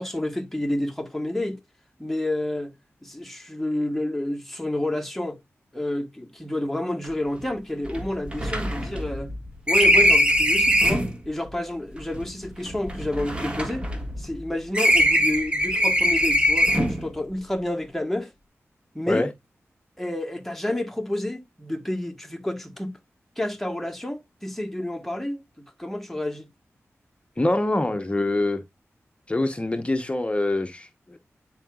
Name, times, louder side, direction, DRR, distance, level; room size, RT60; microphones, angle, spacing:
voice 1, 0.0-1.6 2.0-2.7 3.0-5.4 5.7-9.3 9.7-13.8 14.2-18.3 18.9-19.3 20.0-22.9 23.4-26.5, left 1 dB, 5° left, 1.4 m, -29 dB
sound 1, 7.0-7.1 7.4-7.5 7.9-11.2 12.0-14.4 14.7-17.1, equal, 20° right, 1.6 m, -22 dB
voice 2, 27.4-28.6 29.3-31.2, left 2 dB, 25° left, 0.9 m, -25 dB
9.6 x 4.7 x 2.3 m
wide cardioid pair, 65°, 5 cm